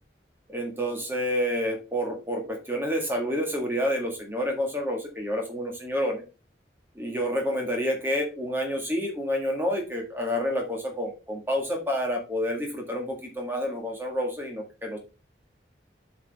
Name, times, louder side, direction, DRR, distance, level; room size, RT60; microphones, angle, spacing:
voice 1, 0.5-6.2 7.0-15.0, equal, 10° right, 1 dB, 1.8 m, -29 dB
7.2 x 6.2 x 3.5 m, 0.31 s
head